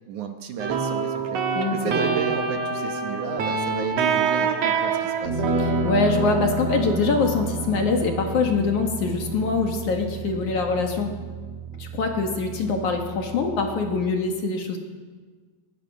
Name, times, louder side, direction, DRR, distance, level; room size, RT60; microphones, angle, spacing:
voice 1, 0.1-5.5, right 8 dB, 70° right, 5 dB, 1.8 m, -34 dB
sound 1, 0.6-14.1, right 4 dB, 50° right, 2.1 m, -27 dB
voice 2, 1.6-2.1 5.8-11.2 11.8-14.8, left 4 dB, 55° left, 3 dB, 2.8 m, -24 dB
22.5 x 19.5 x 6.3 m, 1.4 s
omnidirectional pair, 5.0 m